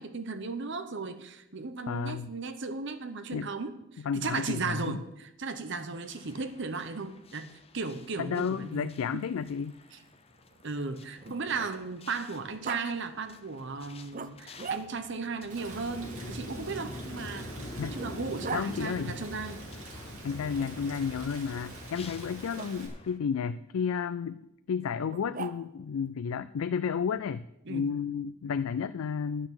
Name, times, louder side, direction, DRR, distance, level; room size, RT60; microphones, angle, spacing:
voice 1, 0.0-9.3 9.9-10.0 10.6-17.5 17.8-19.6 27.7-27.9, right 4 dB, 55° right, 10 dB, 0.9 m, -36 dB
voice 2, 1.9-2.3 3.3-3.5 4.0-5.0 8.2-9.8 17.8-18.0 18.5-19.2 20.2-24.4 24.7-29.5, left 6 dB, 75° left, 13 dB, 0.4 m, -32 dB
sound 1, 5.9-23.2, left 1 dB, 30° left, 0.7 m, -47 dB
Growling, 8.6-12.0 12.6-12.8 14.1-15.2 16.6-18.7 20.5-21.2 22.5-22.7 25.1-25.9, right 5 dB, 40° right, 0.5 m, -42 dB
Rain, 15.5-22.9, right 2 dB, 85° right, 2.7 m, -46 dB
11.0 x 6.1 x 8.7 m, 0.86 s
head